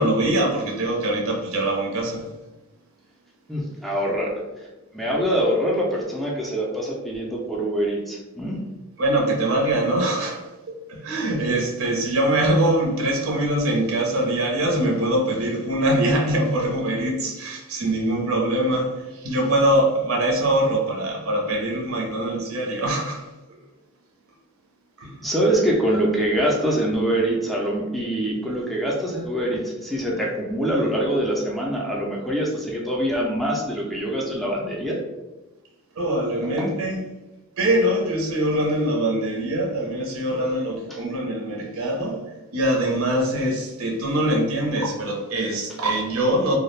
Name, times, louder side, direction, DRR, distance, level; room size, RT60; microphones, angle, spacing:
voice 1, 0.0-2.3 9.0-23.2 25.0-25.2 36.0-37.0 37.6-42.2 42.5-46.6, right 1 dB, 70° right, -1 dB, 0.6 m, -23 dB
voice 2, 3.5-4.3 4.9-8.6 25.2-35.0 36.4-36.7 40.9-41.0, right 1 dB, ahead, -4 dB, 0.4 m, -24 dB
2.3 x 2.0 x 3.1 m, 1.1 s
head